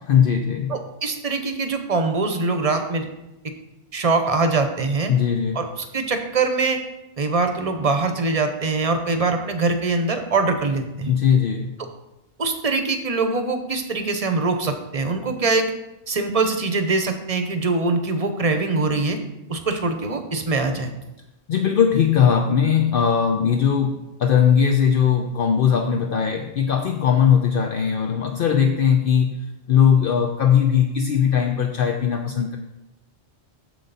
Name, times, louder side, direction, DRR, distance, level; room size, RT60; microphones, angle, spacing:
voice 1, 0.1-0.8 5.1-5.7 11.1-11.8 21.5-32.6, left 8 dB, 60° left, 4 dB, 0.7 m, -19 dB
voice 2, 0.7-3.1 3.9-5.1 5.5-5.7 5.9-6.8 7.2-11.1 12.4-15.7 16.1-19.2 19.5-20.9, right 3 dB, 35° right, 7 dB, 0.8 m, -23 dB
7.7 x 6.7 x 4.0 m, 0.96 s
omnidirectional pair, 1.1 m